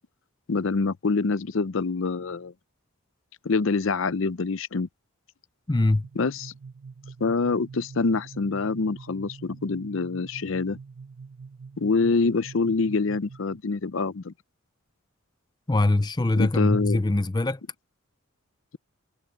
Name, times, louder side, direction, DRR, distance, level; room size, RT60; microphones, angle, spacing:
voice 1, 0.5-2.5 3.4-4.9 6.2-6.5 7.2-10.8 11.8-14.3 16.4-17.0, left 4 dB, 60° left, 0.6 m, -25 dB
voice 2, 5.7-6.1 15.7-17.6, left 2 dB, 20° left, 0.5 m, -23 dB
sound 1, 6.0-13.6, right 5 dB, 70° right, 0.6 m, -45 dB
head